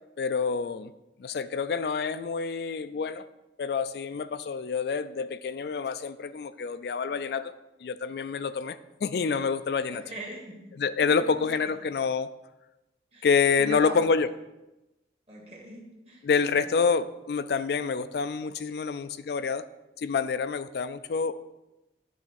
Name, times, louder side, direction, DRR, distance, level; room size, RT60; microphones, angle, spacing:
voice 1, 0.2-0.9 1.2-3.3 3.6-7.5 7.8-10.0 10.8-12.3 13.2-14.3 16.2-19.6 20.0-21.3, left 5 dB, 65° left, 12 dB, 0.3 m, -27 dB
voice 2, 9.9-11.5 13.1-13.3 13.6-14.0 15.3-16.3 16.7-16.8, right 1 dB, 35° right, 0 dB, 1.6 m, -41 dB
10.5 x 3.6 x 5.7 m, 0.99 s
head